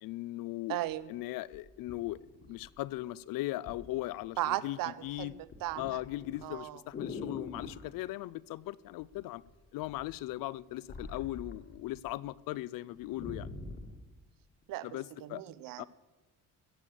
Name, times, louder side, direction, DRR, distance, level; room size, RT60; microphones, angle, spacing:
voice 1, 0.0-0.8 1.1-2.2 2.5-5.3 5.8-9.4 9.7-13.5 14.8-15.4 15.8-15.9, left 16 dB, 85° left, 0.5 m, -38 dB
voice 2, 0.7-1.1 4.4-6.0 6.4-6.8 14.7-14.9 15.2-15.9, right 15 dB, 90° right, 0.7 m, -36 dB
sound 1, 0.9-1.0 1.5-3.0 3.7-3.9 4.2-4.7 5.0-7.9 9.0-9.5 9.8-12.1 12.4-12.5 12.8-14.0 14.6-14.7, left 4 dB, 35° left, 1.4 m, -44 dB
16.5 x 6.9 x 7.4 m
cardioid pair, 175°, 33 cm